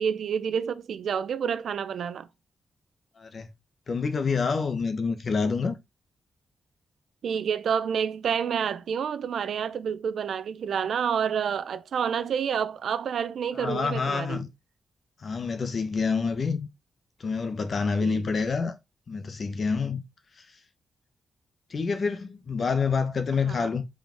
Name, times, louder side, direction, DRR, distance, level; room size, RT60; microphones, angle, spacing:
voice 1, 0.0-2.3 7.2-14.4 18.0-18.3 22.6-22.8 23.5-23.7, right 7 dB, 65° right, 0.7 m, -29 dB
voice 2, 3.2-3.5 3.9-5.8 13.5-14.5 15.2-16.7 17.2-18.7 19.1-20.0 21.7-23.8, left 5 dB, 40° left, 1.1 m, -27 dB
5.8 x 5.0 x 4.4 m
wide cardioid pair, 175°, 0 cm